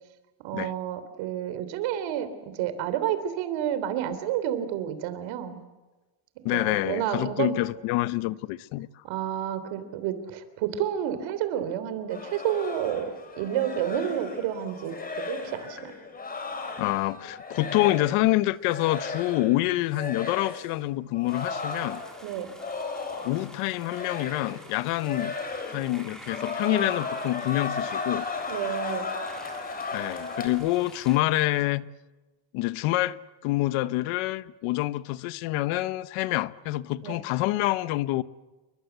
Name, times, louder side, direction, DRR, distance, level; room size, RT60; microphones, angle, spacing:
voice 1, 0.4-5.6 6.5-7.6 9.0-13.1 13.4-15.9 22.2-22.5 26.6-26.9 28.5-29.1 37.0-37.2, right 10 dB, 65° right, 3.4 m, -30 dB
voice 2, 6.4-8.9 16.8-22.0 23.2-25.3 25.7-28.3 29.9-31.8 32.5-33.2 33.4-38.2, left 17 dB, 85° left, 1.1 m, -27 dB
sound 1, 12.1-18.3 18.6-19.6 19.9-20.7 21.1-23.5 23.7-24.7 25.0-26.0 26.2-30.5, left 4 dB, 20° left, 3.8 m, -35 dB
sound 2, 21.3-31.2, right 1 dB, ahead, 3.8 m, -49 dB
28.5 x 23.5 x 8.1 m
cardioid pair, 175°, 49 cm